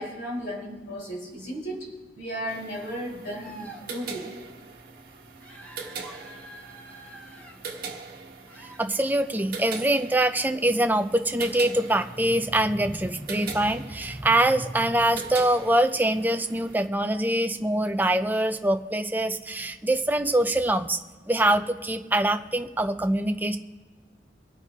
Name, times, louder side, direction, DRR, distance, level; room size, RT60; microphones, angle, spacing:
voice 1, 0.0-4.3, equal, 65° left, -5 dB, 4.9 m, -35 dB
sound 1, 2.5-16.9, right 5 dB, 50° right, 1.4 m, -42 dB
sound 2, 3.4-3.9 5.4-7.5 8.5-8.8, right 1 dB, 10° left, 2.2 m, -46 dB
voice 2, 8.6-21.0 21.3-23.6, right 1 dB, 10° right, 7 dB, 0.5 m, -24 dB
25.0 x 9.3 x 2.9 m, 1.4 s
head